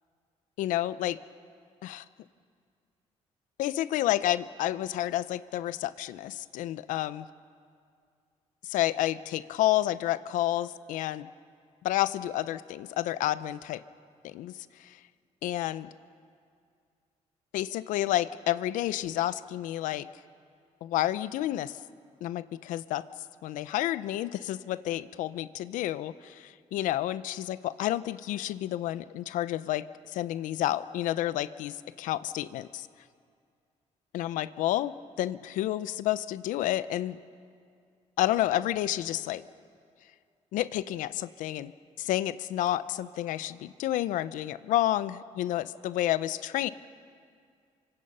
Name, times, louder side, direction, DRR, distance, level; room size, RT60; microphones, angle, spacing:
voice 1, 0.6-1.2 1.8-2.0 3.6-7.3 8.6-11.3 11.8-13.8 14.2-14.5 14.8-15.0 15.4-15.9 17.5-20.1 20.8-21.8 22.2-23.1 23.4-29.8 30.1-32.9 34.1-37.2 38.2-39.4 40.5-41.7 42.0-46.7, left 14 dB, 90° left, 15 dB, 0.7 m, -30 dB
26.5 x 25.0 x 5.6 m, 2.2 s
cardioid pair, 75°, 13 cm